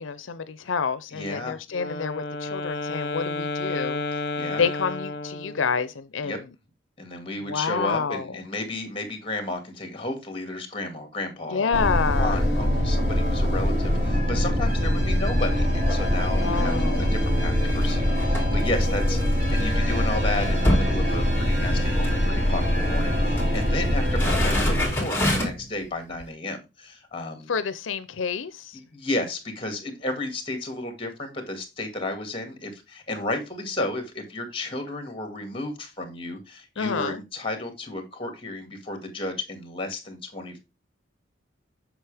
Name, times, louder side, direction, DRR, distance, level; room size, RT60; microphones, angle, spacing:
voice 1, 0.0-4.0 4.6-6.4 7.4-8.4 11.5-12.5 16.4-17.1 27.5-28.8 36.8-37.2, left 5 dB, 90° left, 0.6 m, -28 dB
voice 2, 1.1-1.6 4.1-4.6 6.2-6.4 7.0-11.8 12.2-16.7 17.0-27.5 28.7-40.6, left 2 dB, 30° left, 2.2 m, -33 dB
Wind instrument woodwind instrument, 1.7-5.8, left 2 dB, 55° left, 1.1 m, -31 dB
sound 1, 11.7-24.9, equal, 35° right, 4.7 m, -23 dB
sound 2, 15.6-16.1 16.6-19.6 20.0-20.1 20.3-21.7 22.0-22.2 23.0-23.7 24.0-25.7 26.2-26.3, left 1 dB, 10° left, 2.9 m, -28 dB
8.0 x 6.1 x 3.4 m
head